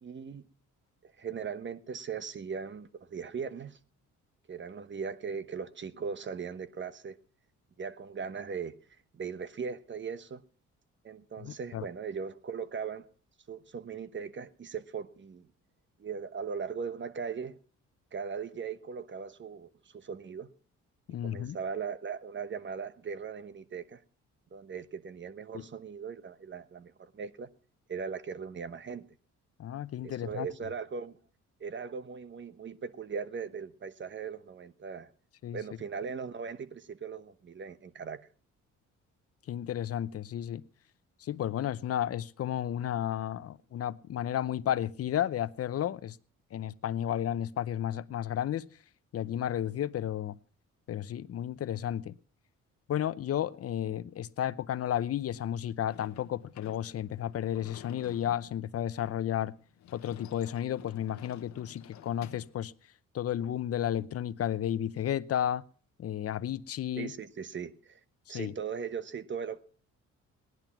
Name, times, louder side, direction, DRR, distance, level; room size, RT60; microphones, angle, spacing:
voice 1, 0.0-0.4 1.0-3.8 4.5-7.2 7.8-8.7 9.1-10.4 11.0-13.0 13.5-15.5 16.0-17.6 18.1-20.5 21.1-24.0 24.5-27.5 27.9-29.0 30.0-31.2 31.6-35.1 35.5-38.2 67.0-68.0 68.3-69.6, right 6 dB, 40° right, 1.1 m, -39 dB
voice 2, 11.4-11.8 21.1-21.6 25.5-25.6 29.6-30.5 35.4-35.6 39.5-40.6 41.2-46.2 46.5-48.7 49.1-50.4 50.9-52.2 52.9-59.6 59.9-62.7 63.1-65.6 66.0-67.1 68.3-68.5, left 10 dB, 50° left, 0.7 m, -32 dB
Sliding door / Slam, 55.9-62.6, left 11 dB, 65° left, 1.2 m, -52 dB
18.0 x 10.5 x 5.9 m
cardioid pair, 90°, 30 cm